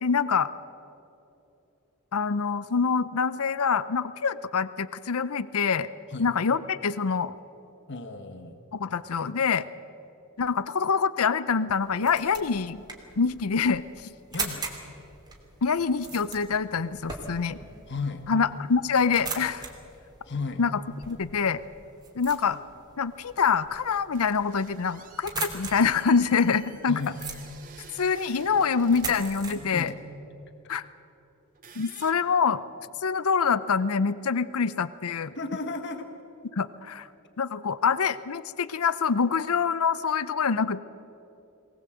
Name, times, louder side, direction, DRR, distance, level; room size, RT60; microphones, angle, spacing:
voice 1, 0.0-0.5 2.1-5.9 6.2-7.3 8.7-9.6 10.4-12.8 13.2-14.1 15.6-17.6 18.3-19.7 20.6-20.8 21.1-21.6 22.1-22.6 23.0-27.0 28.0-29.9 30.7-30.8 31.8-32.6 33.0-35.3 36.5-37.1 37.4-40.8, left 5 dB, 85° left, 16 dB, 0.6 m, -25 dB
voice 2, 7.9-8.6 14.3-14.7 17.9-18.2 20.2-20.6 26.9-27.2 29.5-30.0 35.3-36.1, left 3 dB, 55° left, 7 dB, 1.4 m, -34 dB
sound 1, 11.7-29.6, right 4 dB, 20° right, 2.8 m, -41 dB
sound 2, 24.1-29.2 29.8-30.0 31.5-32.1, right 5 dB, 40° right, 2.1 m, -50 dB
23.0 x 19.0 x 7.9 m, 2.9 s
head